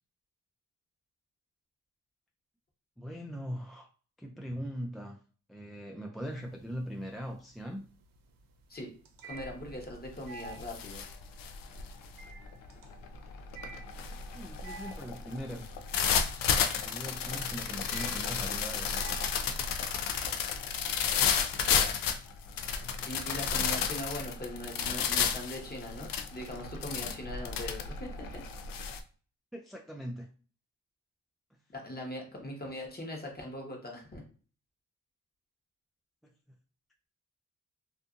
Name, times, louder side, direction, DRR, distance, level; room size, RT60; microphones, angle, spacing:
voice 1, 3.0-3.9 4.2-5.2 5.5-7.9 14.1-15.7 16.7-19.5 29.5-30.3 36.2-36.6, equal, ahead, 0.3 m, -41 dB
sound 1, 6.3-6.9 7.3-21.7, right 4 dB, 75° right, 0.6 m, -50 dB
voice 2, 9.2-11.0 21.5-22.0 23.1-28.4 31.7-34.2, left 1 dB, 30° left, 1.0 m, -41 dB
sound 2, 9.4-9.7 10.1-29.0, left 7 dB, 75° left, 0.5 m, -32 dB
2.5 x 2.5 x 2.4 m
cardioid pair, 65°, 34 cm